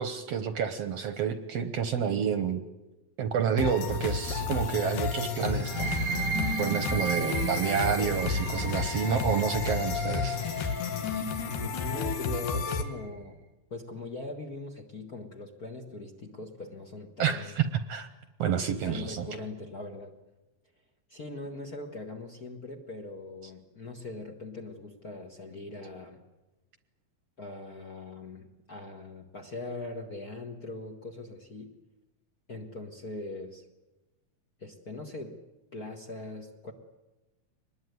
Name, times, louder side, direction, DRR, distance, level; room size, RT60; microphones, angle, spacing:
voice 1, 0.0-2.6 3.2-10.4 17.2-18.1 18.4-19.3, right 7 dB, 65° right, 9 dB, 1.8 m, -29 dB
sound 1, 3.6-12.8, left 5 dB, 75° left, 3.1 m, -31 dB
sound 2, 5.6-13.1, right 6 dB, 90° right, 2.6 m, -36 dB
voice 2, 8.0-8.9 11.6-13.4 13.7-17.5 18.9-20.1 21.1-26.2 27.4-31.7 32.5-33.6 34.6-35.4 35.7-36.7, left 2 dB, 40° left, 5 dB, 1.5 m, -41 dB
24.0 x 20.5 x 9.5 m, 1.1 s
omnidirectional pair, 3.6 m